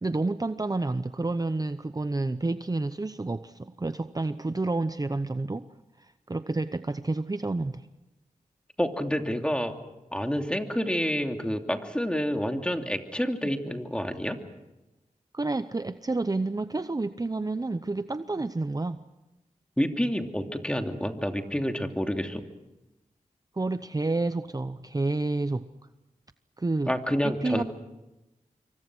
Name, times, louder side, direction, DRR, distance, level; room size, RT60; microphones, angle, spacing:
voice 1, 0.0-5.7 6.0-7.9 13.4-13.5 15.3-19.0 23.5-25.7 26.6-26.9 27.2-27.6, right 2 dB, 25° right, 12 dB, 0.8 m, -29 dB
voice 2, 8.8-9.7 10.1-14.4 19.8-22.4 26.9-27.6, equal, 5° left, 5 dB, 2.7 m, -28 dB
26.5 x 24.5 x 6.3 m, 1.0 s
cardioid pair, 50°, 14 cm